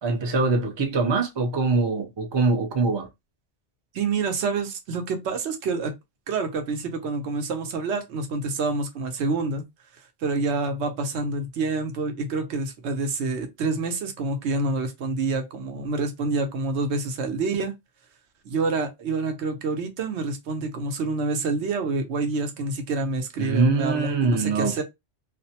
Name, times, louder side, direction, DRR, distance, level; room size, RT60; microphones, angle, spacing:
voice 1, 0.0-3.1 23.4-24.8, right 3 dB, 35° right, 0.4 m, -23 dB
voice 2, 3.9-5.9 6.3-9.6 10.2-17.7 18.4-24.8, right 3 dB, 80° right, 0.9 m, -27 dB
2.5 x 2.0 x 2.7 m
omnidirectional pair, 1.1 m